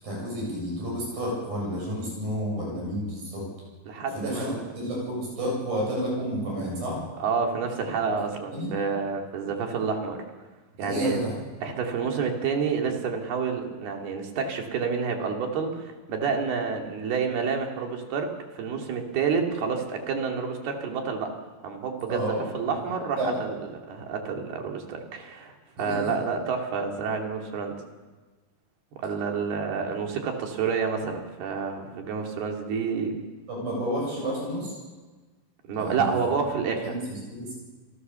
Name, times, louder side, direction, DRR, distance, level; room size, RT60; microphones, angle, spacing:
voice 1, 0.0-3.5 4.1-7.0 8.5-8.7 10.7-11.4 22.1-22.4 23.2-23.3 25.8-26.2 33.5-34.8 35.7-36.4 36.8-37.6, equal, 65° right, -3 dB, 9.1 m, -30 dB
voice 2, 3.9-4.6 7.2-10.3 10.8-11.2 11.6-21.3 21.6-23.5 23.9-27.8 29.0-33.2 35.6-36.9, right 5 dB, 85° right, 2 dB, 4.6 m, -29 dB
28.5 x 16.5 x 7.0 m, 1.3 s
omnidirectional pair, 4.4 m